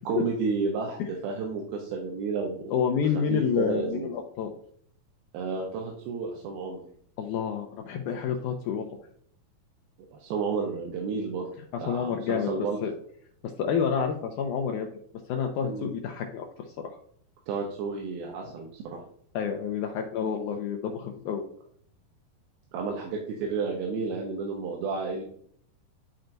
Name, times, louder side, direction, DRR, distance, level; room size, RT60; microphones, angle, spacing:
voice 1, 0.1-2.7 3.3-4.1 5.3-6.8 10.1-11.5 11.8-12.8 15.6-15.9 17.5-19.0 22.7-25.2, right 4 dB, 85° right, 0 dB, 2.8 m, -31 dB
voice 2, 2.7-4.5 7.2-8.9 11.7-12.5 12.8-12.9 13.6-14.9 15.3-16.5 16.8-17.0 19.3-21.4, left 7 dB, 90° left, 3 dB, 1.8 m, -28 dB
11.5 x 4.5 x 2.6 m, 0.62 s
omnidirectional pair, 4.2 m